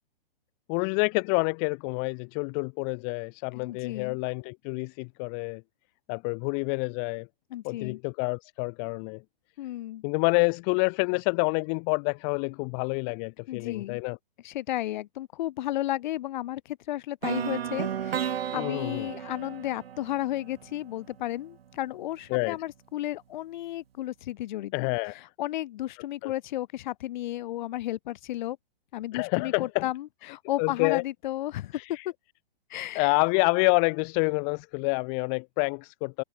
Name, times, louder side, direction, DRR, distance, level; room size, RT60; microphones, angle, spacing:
voice 1, 0.7-5.6 6.1-7.3 7.6-9.2 10.0-14.2 18.5-19.1 22.3-22.6 24.7-25.2 26.2-26.3 29.1-29.9 30.6-31.0 31.7-32.1 32.9-36.2, left 40 dB or more, 20° left, 0.5 m, -28 dB
voice 2, 3.5-4.2 7.5-8.0 9.6-10.0 13.5-14.0 14.4-24.9 25.4-28.6 28.9-31.8 32.7-33.1, left 14 dB, 50° left, 2.0 m, -33 dB
sound 1, 17.2-21.2, right 9 dB, 70° right, 3.8 m, -33 dB
hypercardioid pair, 150°, 31 cm